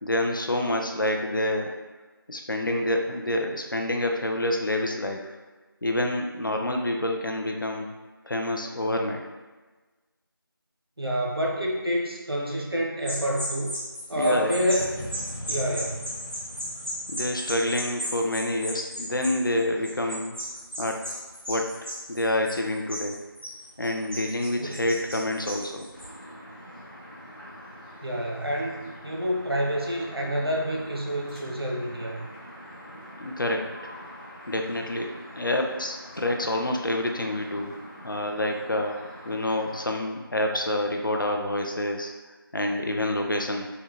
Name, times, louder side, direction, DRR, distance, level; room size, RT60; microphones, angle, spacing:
voice 1, 0.0-1.7 2.3-5.3 5.8-7.9 8.2-9.2 14.2-14.5 17.1-20.4 20.8-21.1 21.5-21.7 22.1-23.2 23.8-25.8 33.2-33.7 34.5-37.7 38.0-39.0 39.3-42.1 42.5-43.7, left 1 dB, 60° left, 3 dB, 0.4 m, -27 dB
voice 2, 11.0-13.7 14.1-15.0 15.5-16.1 24.6-24.7 28.0-32.3, equal, 85° right, -1 dB, 0.8 m, -28 dB
sound 1, 13.0-26.1, equal, 30° right, 0.8 m, -35 dB
sound 2, 14.8-18.6, left 1 dB, 80° left, 1.3 m, -41 dB
sound 3, 25.9-40.0, equal, ahead, 1.4 m, -45 dB
3.6 x 2.2 x 2.9 m, 1.3 s
figure-of-eight pair, 175°, 12 cm